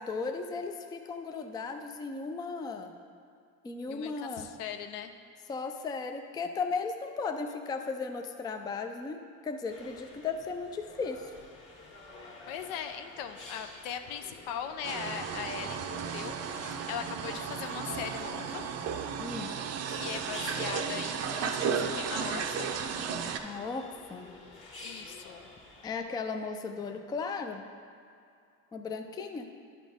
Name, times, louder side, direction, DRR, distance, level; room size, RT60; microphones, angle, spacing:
voice 1, 0.0-2.9 3.6-4.5 5.5-11.3 19.2-19.5 23.4-24.3 25.8-27.6 28.7-29.5, left 4 dB, 10° left, 6 dB, 0.3 m, -36 dB
voice 2, 3.9-5.1 12.5-18.6 19.9-22.8 24.8-25.5, left 8 dB, 80° left, 8 dB, 0.6 m, -40 dB
sound 1, 9.7-26.0, left 2 dB, 35° left, 1.6 m, -50 dB
sound 2, 14.8-23.4, right 6 dB, 45° right, 0.5 m, -34 dB
11.0 x 4.2 x 3.5 m, 2.4 s
supercardioid pair, 105°, 37 cm